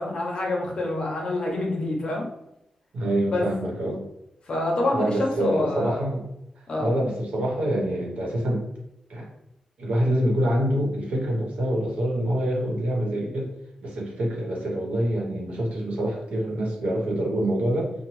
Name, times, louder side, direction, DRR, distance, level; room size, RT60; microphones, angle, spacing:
voice 1, 0.0-2.3 3.3-3.5 4.5-6.0 6.7-6.9, left 2 dB, 45° left, 0 dB, 0.6 m, -26 dB
voice 2, 2.9-4.0 4.9-6.3 6.8-8.7 9.1-9.3 9.8-13.5 13.8-17.9, right 1 dB, 80° right, -2 dB, 0.9 m, -26 dB
3.0 x 2.1 x 3.0 m, 0.83 s
wide cardioid pair, 160°, 2 cm